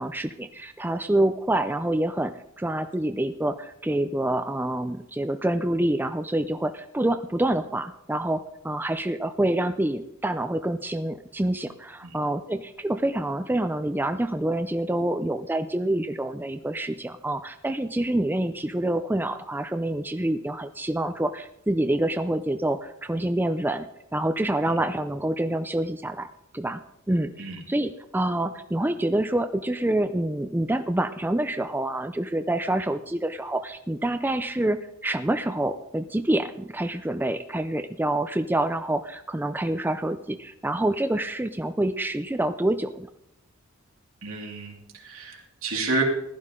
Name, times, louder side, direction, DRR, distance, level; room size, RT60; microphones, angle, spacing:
voice 1, 0.0-23.9 24.1-26.3 26.5-26.8 27.1-43.1, right 1 dB, 10° right, 8 dB, 0.5 m, -27 dB
voice 2, 44.2-46.0, right 3 dB, 80° right, 0 dB, 2.7 m, -30 dB
15.0 x 12.0 x 3.7 m, 0.78 s
head